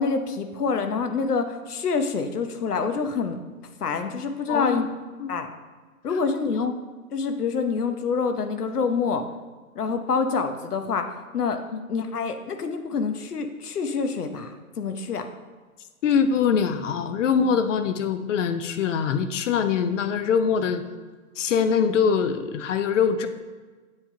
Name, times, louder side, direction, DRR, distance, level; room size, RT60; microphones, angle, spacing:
voice 1, 0.0-3.4 3.8-4.9 5.3-5.5 6.0-6.7 7.1-9.3 9.8-11.1 11.3-11.6 11.9-15.3, left 5 dB, 90° left, 7 dB, 1.0 m, -26 dB
voice 2, 4.5-4.9 5.2-5.3 11.7-11.8 16.0-20.8 21.4-23.3, left 6 dB, 55° left, 9 dB, 0.7 m, -23 dB
7.8 x 7.5 x 2.8 m, 1.4 s
hypercardioid pair, 140°, 45 cm